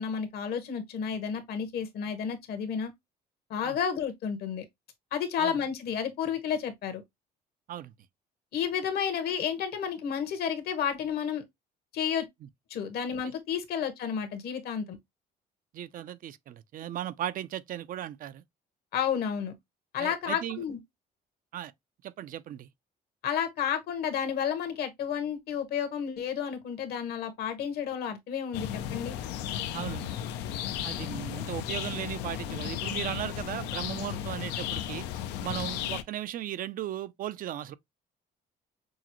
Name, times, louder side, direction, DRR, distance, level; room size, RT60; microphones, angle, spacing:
voice 1, 0.0-2.9 3.5-4.6 5.1-7.0 8.5-11.4 11.9-12.2 12.7-15.0 18.9-19.5 19.9-20.8 23.2-29.1, left 8 dB, 70° left, 1.2 m, -31 dB
voice 2, 15.7-18.4 20.0-20.6 21.5-21.7 22.0-22.7 29.7-30.2 30.8-35.1 35.4-37.8, right 12 dB, 55° right, 0.5 m, -37 dB
sound 1, 28.5-36.0, left 10 dB, 90° left, 0.5 m, -34 dB
6.2 x 2.1 x 2.9 m
cardioid pair, 110°, 17 cm